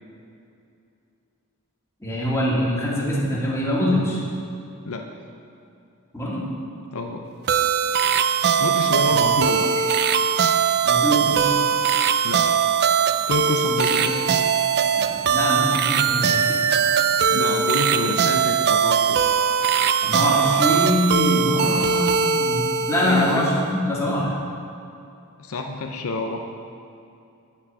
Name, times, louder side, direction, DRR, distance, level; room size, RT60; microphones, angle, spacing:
voice 1, 2.0-4.2 6.1-6.4 9.1-9.2 10.8-11.5 13.9-14.1 15.0-16.6 20.0-24.4, equal, 15° left, -6 dB, 2.1 m, -24 dB
voice 2, 6.9-7.2 8.6-9.9 12.2-12.6 13.3-14.2 17.3-19.2 21.6-21.9 23.0-23.3 25.4-26.4, left 2 dB, 70° left, 3 dB, 0.7 m, -28 dB
sound 1, 7.5-23.6, right 7 dB, 50° right, 0.4 m, -20 dB
9.3 x 6.0 x 7.9 m, 2.6 s
head